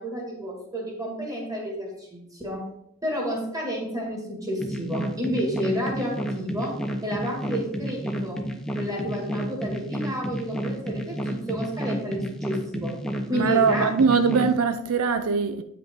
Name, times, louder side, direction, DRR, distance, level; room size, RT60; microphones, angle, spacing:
voice 1, 0.0-2.7 3.0-6.8 7.0-8.4 8.7-13.0 13.3-13.9, equal, 15° right, 1.9 m, -30 dB
sound 1, 4.6-14.5, right 1 dB, 5° left, 0.7 m, -31 dB
voice 2, 13.3-15.6, right 5 dB, 80° right, 0.5 m, -22 dB
8.4 x 5.9 x 3.6 m
head